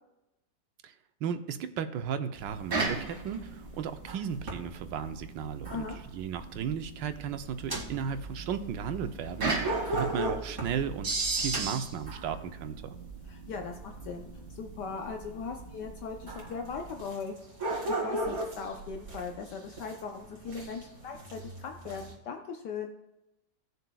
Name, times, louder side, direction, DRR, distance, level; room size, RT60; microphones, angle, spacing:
voice 1, 1.2-5.8 6.1-13.0, right 7 dB, 80° right, 9 dB, 1.4 m, -35 dB
sound 1, 2.4-22.1, right 2 dB, 40° right, 2.6 m, -36 dB
sound 2, 7.3-12.4, right 2 dB, 20° right, 0.6 m, -43 dB
voice 2, 13.3-17.3 17.7-22.9, left 5 dB, 70° left, 4 dB, 1.3 m, -39 dB
17.0 x 6.7 x 2.3 m, 0.94 s
omnidirectional pair, 2.0 m